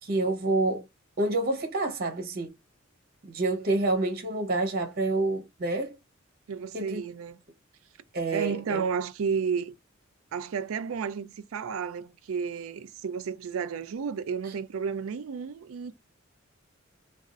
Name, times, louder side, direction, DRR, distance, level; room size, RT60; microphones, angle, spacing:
voice 1, 0.0-0.9 1.2-2.5 3.2-5.9 6.7-7.0 8.1-8.8, right 2 dB, 45° right, 0.8 m, -28 dB
voice 2, 6.5-7.4 8.3-9.7 10.3-15.9, right 6 dB, 85° right, 0.4 m, -32 dB
2.5 x 2.3 x 3.6 m
head